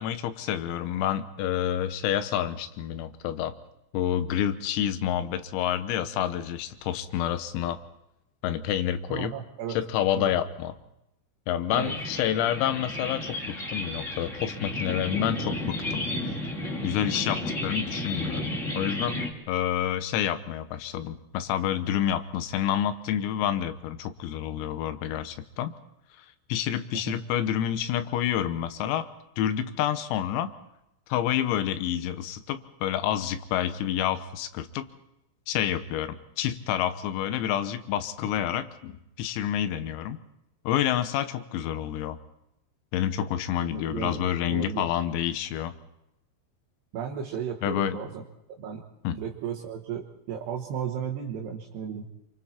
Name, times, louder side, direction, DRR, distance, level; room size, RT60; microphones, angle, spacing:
voice 1, 0.0-3.6 3.9-7.8 8.4-9.3 9.7-10.7 11.5-16.0 16.8-19.2 19.5-25.7 26.2-29.1 29.4-30.5 31.1-34.9 35.5-40.2 40.7-42.2 42.9-45.7 47.6-48.0 49.1-49.2, left 10 dB, 90° left, 10 dB, 3.8 m, -28 dB
voice 2, 9.1-9.8 10.2-10.3 11.7-11.9 27.1-27.2 43.7-44.9 46.9-48.2 48.6-48.8 49.2-52.1, right 7 dB, 65° right, 0 dB, 3.0 m, -34 dB
sound 1, 11.7-19.3, left 1 dB, 65° left, 0.7 m, -32 dB
27.5 x 25.0 x 4.4 m, 0.86 s
omnidirectional pair, 5.9 m